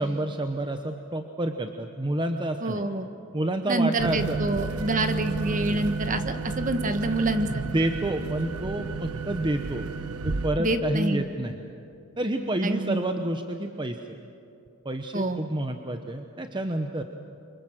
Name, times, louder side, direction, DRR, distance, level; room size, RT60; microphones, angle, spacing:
voice 1, 0.0-2.8 3.3-4.4 7.5-9.8 10.2-11.7 12.2-14.0 14.8-17.0, right 1 dB, 20° right, 5 dB, 0.9 m, -29 dB
voice 2, 2.6-3.1 3.7-7.6 10.6-11.3 12.6-13.0 15.1-15.4, right 2 dB, 35° right, 8 dB, 1.4 m, -27 dB
sound 1, 4.0-10.5, right 4 dB, 85° right, 1.1 m, -31 dB
28.0 x 25.0 x 7.6 m, 2.7 s
head